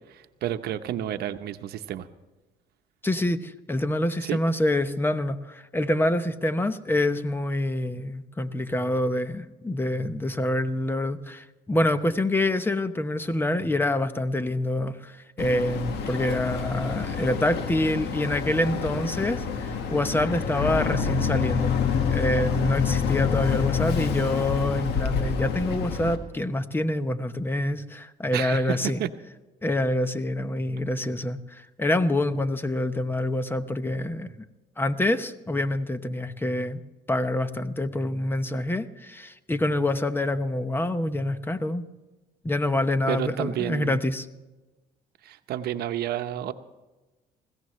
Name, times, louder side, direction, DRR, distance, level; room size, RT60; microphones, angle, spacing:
voice 1, 0.1-2.1 4.2-4.4 28.3-29.1 43.1-44.0 45.2-46.5, right 11 dB, 70° right, 9 dB, 0.9 m, -30 dB
voice 2, 3.0-21.7 22.1-29.0 29.6-34.3 34.8-36.8 37.1-41.8 42.4-44.3, left 1 dB, 15° left, 11 dB, 0.9 m, -26 dB
Boat Water vehicle, 15.4-26.2, left 6 dB, 75° left, 1.7 m, -27 dB
21.0 x 16.0 x 3.2 m, 1.1 s
cardioid pair, 110°, 17 cm